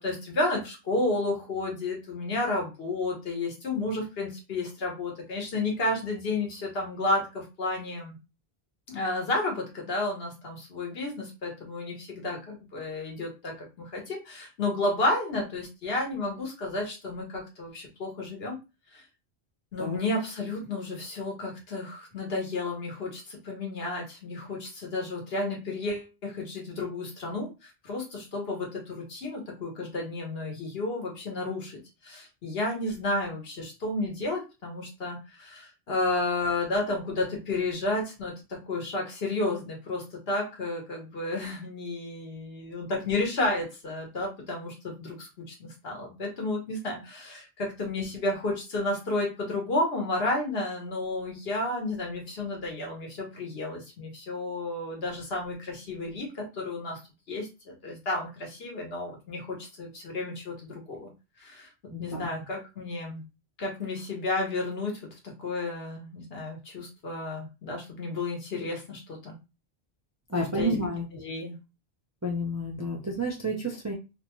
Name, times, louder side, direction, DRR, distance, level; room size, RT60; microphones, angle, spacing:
voice 1, 0.0-8.2 8.9-18.6 18.9-19.0 19.7-57.0 57.3-61.1 61.4-61.7 62.0-63.2 63.6-69.4 70.3-70.7 71.2-71.6, left 2 dB, 70° left, 0 dB, 1.2 m, -32 dB
voice 2, 61.9-62.3 70.3-71.0 72.2-73.9, right 1 dB, 25° right, -1 dB, 0.4 m, -30 dB
2.7 x 2.2 x 2.9 m, 0.28 s
omnidirectional pair, 1.1 m